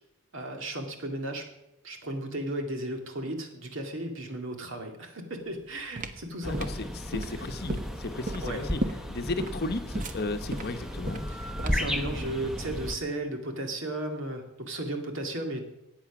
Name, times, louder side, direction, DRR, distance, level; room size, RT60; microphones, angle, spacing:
voice 1, 0.3-1.5 1.8-6.6 8.4-8.7 11.3-15.6, right 1 dB, 60° right, 3 dB, 2.3 m, -35 dB
sound 1, 5.5-12.0, right 1 dB, 40° right, 0.9 m, -36 dB
voice 2, 6.4-8.8 9.1-11.2, left 2 dB, 50° left, 8 dB, 1.0 m, -34 dB
sound 2, 6.4-13.0, equal, ahead, 0.9 m, -35 dB
14.5 x 9.2 x 6.0 m, 0.91 s
head